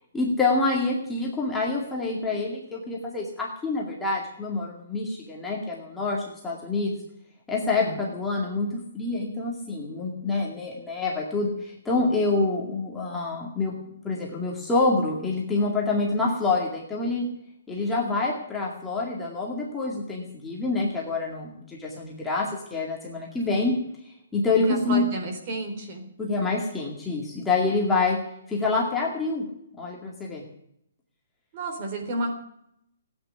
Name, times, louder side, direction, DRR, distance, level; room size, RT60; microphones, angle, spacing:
voice 1, 0.1-7.0 7.5-13.7 14.0-17.2 17.7-23.8 24.3-25.0 26.2-28.2 28.5-29.4 29.8-30.4, left 3 dB, 5° left, -3 dB, 2.2 m, -27 dB
voice 2, 7.7-8.0 24.7-26.1 31.5-32.3, right 2 dB, 30° right, 3 dB, 3.9 m, -31 dB
15.5 x 9.2 x 9.8 m, 0.75 s
hypercardioid pair, 165°, 0 cm